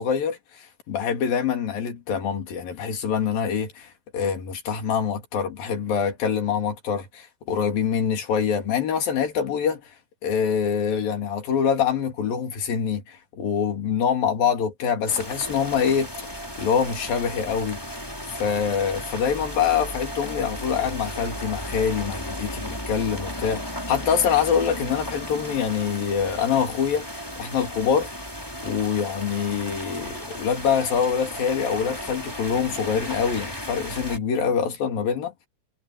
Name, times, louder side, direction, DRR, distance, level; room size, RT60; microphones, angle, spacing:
voice 1, 0.0-10.0 10.2-17.8 18.3-28.4 28.6-35.3, left 7 dB, 50° left, 4.2 m, -25 dB
sound 1, 15.1-34.2, equal, 5° left, 5.1 m, -35 dB
omnidirectional pair, 5.5 m